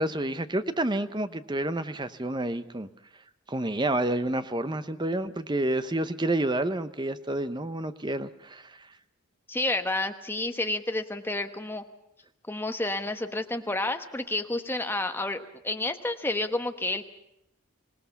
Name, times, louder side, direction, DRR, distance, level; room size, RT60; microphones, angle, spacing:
voice 1, 0.0-2.9 3.5-8.7, right 1 dB, 20° right, 12 dB, 0.8 m, -29 dB
voice 2, 9.5-11.8 12.5-17.0, left 2 dB, 10° left, 7 dB, 1.1 m, -30 dB
26.0 x 18.5 x 7.1 m, 0.82 s
head